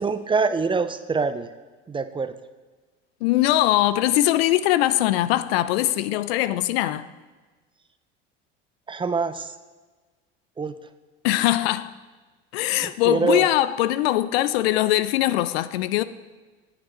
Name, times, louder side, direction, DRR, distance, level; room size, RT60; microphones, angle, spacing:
voice 1, 0.0-1.5 1.9-2.3 8.9-9.6 10.6-10.8 13.1-13.5, right 4 dB, 15° right, 0.5 m, -24 dB
voice 2, 3.2-7.1 11.2-11.9 12.5-16.0, left 14 dB, 80° left, 0.5 m, -21 dB
9.0 x 7.4 x 4.3 m
supercardioid pair, 90°, 30 cm